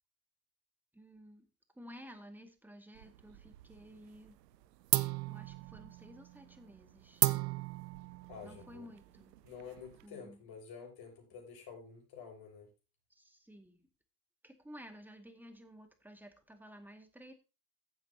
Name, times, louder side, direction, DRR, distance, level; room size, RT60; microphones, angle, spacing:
voice 1, 0.9-1.5 1.7-4.4 5.3-7.3 8.4-9.4 10.0-10.4 13.1-13.9 14.4-17.3, equal, 5° right, 5 dB, 2.1 m, -54 dB
sound 1, 3.0-3.8 4.1-4.6 4.9-10.1, right 17 dB, 85° right, 0.8 m, -36 dB
voice 2, 8.3-8.9 9.4-12.7, left 6 dB, 50° left, 2 dB, 6.1 m, -49 dB
15.0 x 7.9 x 2.9 m, 0.30 s
hypercardioid pair, 85°, 47 cm